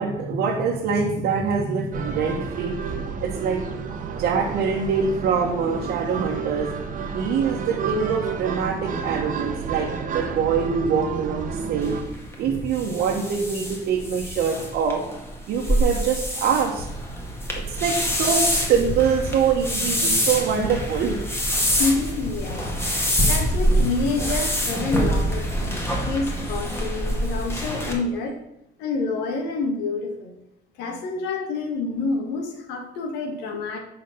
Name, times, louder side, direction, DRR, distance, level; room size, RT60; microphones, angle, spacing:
voice 1, 0.0-2.8 3.2-3.6 4.1-6.7 7.1-12.0 12.4-15.0 15.5-16.9 17.5-21.2, right 6 dB, 75° right, -2 dB, 1.3 m, -24 dB
sound 1, 1.9-12.0, right 6 dB, 50° right, 1.2 m, -31 dB
sound 2, 11.8-27.9, equal, 15° left, 2.0 m, -25 dB
voice 2, 21.7-28.3 28.8-30.3 30.8-33.8, left 3 dB, 90° left, 3 dB, 1.5 m, -28 dB
8.9 x 4.6 x 5.7 m, 0.84 s
cardioid pair, 110°, 17 cm